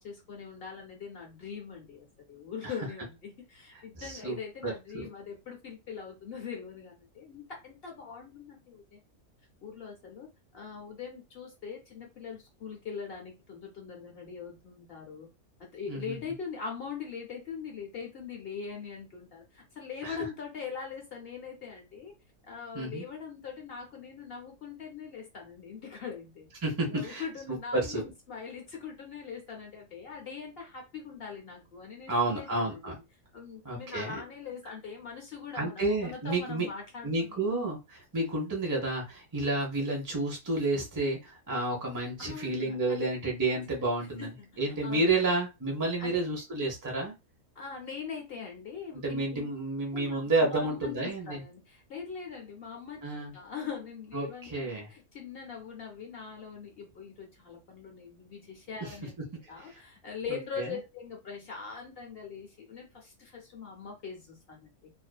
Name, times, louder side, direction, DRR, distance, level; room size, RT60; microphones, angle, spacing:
voice 1, 0.0-9.0 9.6-10.3 10.5-15.3 15.6-22.1 22.5-26.5 26.9-32.9 33.3-37.5 42.2-43.0 44.0-45.4 46.0-46.3 47.6-49.5 49.9-50.2 50.5-53.0 53.3-59.1 59.5-64.9, left 6 dB, 55° left, 1 dB, 0.7 m, -42 dB
voice 2, 4.0-4.4 4.6-5.1 15.9-16.2 20.0-20.2 22.7-23.0 26.6-28.0 32.1-32.9 33.6-34.2 35.5-36.7 37.0-44.3 44.6-47.1 48.9-51.4 53.0-53.3 54.1-54.9 58.8-58.9 60.6-60.8, right 2 dB, 30° right, -1 dB, 0.3 m, -30 dB
2.5 x 2.4 x 2.2 m, 0.25 s
omnidirectional pair, 1.5 m